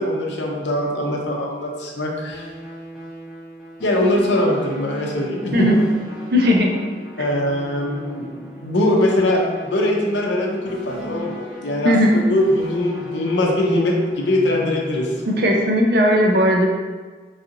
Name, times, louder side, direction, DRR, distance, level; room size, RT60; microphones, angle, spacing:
voice 1, 0.0-2.5 3.8-5.7 7.2-11.9 12.3-15.1, left 1 dB, 90° left, 0 dB, 0.6 m, -21 dB
sound 1, 2.3-15.8, right 1 dB, 5° right, 0.8 m, -37 dB
voice 2, 6.3-6.8 11.8-12.2 15.3-16.7, equal, 60° right, 0 dB, 0.5 m, -17 dB
4.0 x 2.5 x 2.7 m, 1.4 s
head